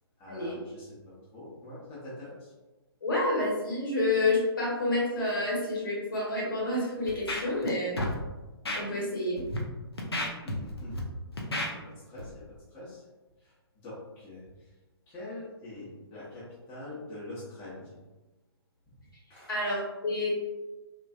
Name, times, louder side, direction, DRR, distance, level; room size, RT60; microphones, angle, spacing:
voice 1, 0.2-2.5 10.4-11.0 11.3-12.4 12.7-13.0 13.4-14.7 15.1-17.9 18.9-19.0 19.3-19.5, left 1 dB, 15° left, -9 dB, 0.8 m, -44 dB
voice 2, 3.0-7.9 8.7-9.4 19.5-20.4, left 2 dB, 55° left, -4 dB, 1.1 m, -29 dB
Scratching (performance technique), 7.1-7.7 8.0-8.1 8.6-8.8 9.4-9.6 10.0-11.0 11.4-11.7 12.2-12.3, left 1 dB, 70° left, 0.6 m, -32 dB
3.2 x 2.4 x 2.4 m, 1.1 s
figure-of-eight pair, 130°, 14 cm